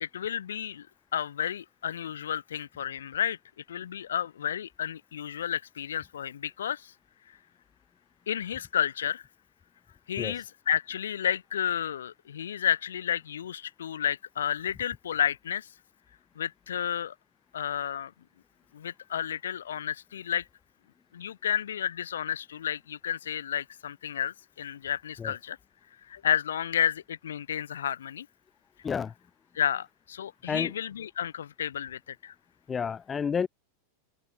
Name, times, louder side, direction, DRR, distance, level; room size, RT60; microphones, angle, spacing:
voice 1, 0.0-0.9 1.1-3.4 3.7-6.9 8.3-9.2 10.1-15.7 16.4-17.1 17.5-18.1 18.7-20.5 21.1-25.6 26.1-28.3 29.5-32.3, left 9 dB, 65° left, 0.7 m, -31 dB
voice 2, 32.7-33.5, left 6 dB, 20° left, 0.4 m, -30 dB
open air
figure-of-eight pair, 90°, 0 cm